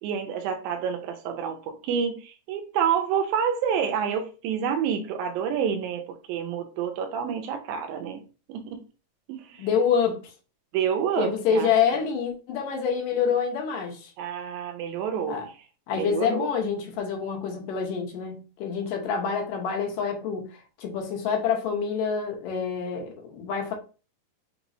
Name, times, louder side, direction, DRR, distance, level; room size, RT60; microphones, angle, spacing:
voice 1, 0.0-8.2 8.5-8.8 9.3-9.7 10.7-11.7 14.2-15.4 15.9-16.5, right 7 dB, 85° right, 2.4 m, -28 dB
voice 2, 9.6-10.3 11.2-14.1 15.3-15.5 15.9-23.7, left 6 dB, 75° left, 2.5 m, -27 dB
5.9 x 3.0 x 2.6 m
omnidirectional pair, 4.0 m